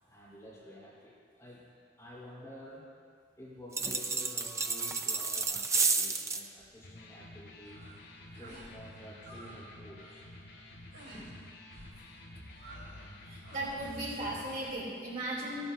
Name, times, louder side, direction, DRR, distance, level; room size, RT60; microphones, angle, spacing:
voice 1, 0.0-1.7 2.0-2.9 3.4-7.9 8.3-10.3 11.1-11.4, left 1 dB, 15° left, -9 dB, 3.7 m, -50 dB
sound 1, 3.7-6.5, right 4 dB, 15° right, 0.4 m, -31 dB
Electric guitar, 6.7-14.7, left 1 dB, 85° left, 2.9 m, -51 dB
sound 2, 7.6-8.0 8.3-8.7 9.0-9.6 9.9-10.2 10.9-11.3 11.7-12.0 12.6-13.1 13.4-13.8, right 2 dB, 85° right, 3.6 m, -52 dB
voice 2, 13.3-15.6, right 1 dB, 45° right, -7 dB, 3.6 m, -37 dB
17.5 x 12.0 x 2.8 m, 2.1 s
head